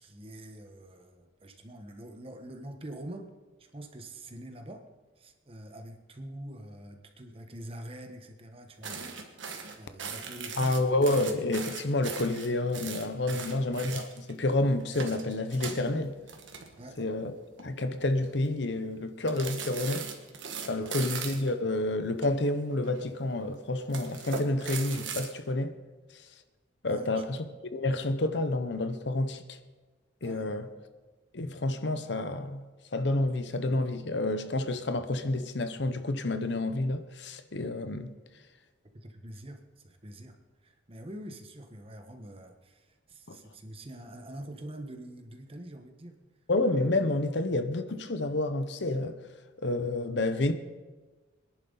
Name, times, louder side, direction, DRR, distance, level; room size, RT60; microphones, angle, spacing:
voice 1, 0.0-3.3 3.6-4.9 5.2-9.2 9.8-10.8 13.3-13.7 16.8-17.0 20.8-20.9 26.9-27.2 30.2-30.6 38.9-46.2, right 1 dB, 30° right, 1.2 m, -45 dB
sound 1, 8.8-14.4 14.8-17.1 17.4-17.6 18.0-18.5 19.3-21.5 22.2-23.0 23.8-25.3, right 6 dB, 75° right, 1.7 m, -39 dB
voice 2, 10.6-16.1 17.0-17.3 17.6-20.1 20.7-25.8 26.8-27.5 27.7-29.6 30.2-30.7 31.3-32.6 32.9-38.1 43.3-43.4 46.5-49.2 49.6-50.5, left 2 dB, 65° left, 0.9 m, -29 dB
24.0 x 10.5 x 4.0 m
head